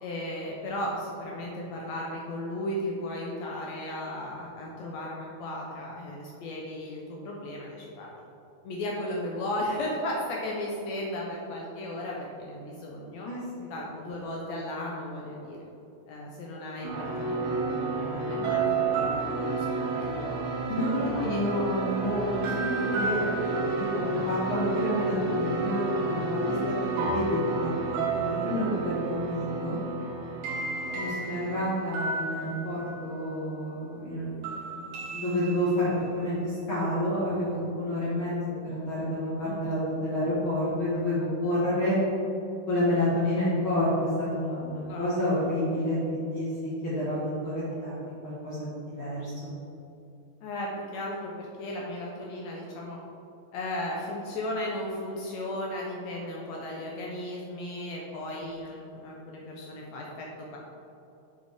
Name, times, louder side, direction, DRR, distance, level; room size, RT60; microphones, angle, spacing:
voice 1, 0.0-8.1 8.6-13.3 13.7-15.6 16.1-18.6 19.0-20.5 20.7-21.4 26.5-26.6 39.5-39.6 44.9-45.1 50.4-53.0 53.5-60.6, left 1 dB, 80° left, -2 dB, 1.5 m, -35 dB
voice 2, 13.2-13.7 20.7-26.5 26.9-29.8 30.9-35.9 36.2-42.0 42.7-49.5, left 1 dB, 50° left, -9 dB, 1.8 m, -29 dB
sound 1, 16.8-33.4 34.4-36.1, right 3 dB, 75° right, 3.2 m, -31 dB
7.6 x 6.6 x 3.5 m, 2.8 s
omnidirectional pair, 4.1 m